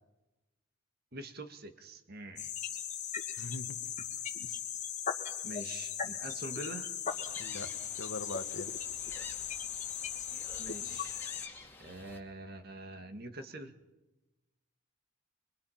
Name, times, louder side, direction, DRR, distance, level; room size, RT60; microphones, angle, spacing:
voice 1, 1.1-2.5 5.4-7.0 10.6-11.2 11.8-13.8, right 1 dB, 45° right, 8 dB, 1.8 m, -45 dB
sound 1, 2.4-11.5, left 8 dB, 35° left, 2.1 m, -38 dB
voice 2, 3.4-3.8 4.4-4.6 7.4-7.7 8.0-8.7, left 2 dB, 65° left, 8 dB, 1.4 m, -42 dB
Gull seagull, 7.1-12.2, left 3 dB, 10° left, 2.3 m, -51 dB
25.0 x 23.5 x 5.9 m, 1.0 s
head